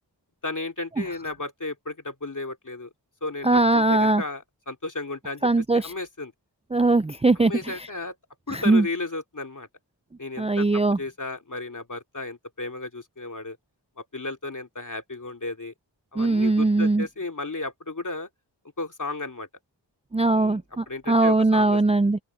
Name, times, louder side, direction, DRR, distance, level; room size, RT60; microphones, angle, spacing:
voice 1, 0.4-2.9 3.2-5.5 5.7-6.3 7.4-8.2 8.5-9.7 10.2-13.6 14.0-15.7 16.1-18.3 18.8-19.5 20.3-20.6 20.9-21.8, left 2 dB, 45° left, 2.7 m, -34 dB
voice 2, 3.4-4.2 5.4-5.9 6.7-7.9 8.5-8.9 10.4-11.0 16.2-17.1 20.1-22.2, right 2 dB, 15° right, 0.4 m, -21 dB
open air
wide cardioid pair, 70°, 43 cm